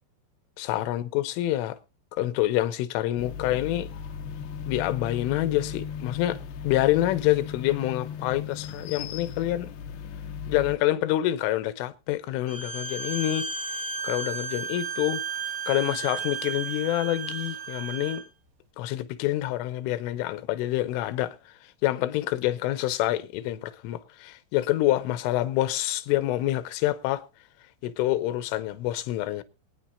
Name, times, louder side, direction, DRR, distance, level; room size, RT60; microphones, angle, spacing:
voice 1, 0.6-1.8 2.1-3.9 4.7-6.4 6.7-9.7 10.5-13.5 14.0-15.2 15.7-18.2 18.8-27.2 27.8-29.4, left 14 dB, 90° left, 3.4 m, -27 dB
sound 1, 3.2-10.8, left 7 dB, 70° left, 2.5 m, -37 dB
Bowed string instrument, 12.5-18.2, right 5 dB, 60° right, 3.9 m, -33 dB
24.0 x 9.5 x 2.6 m
omnidirectional pair, 5.5 m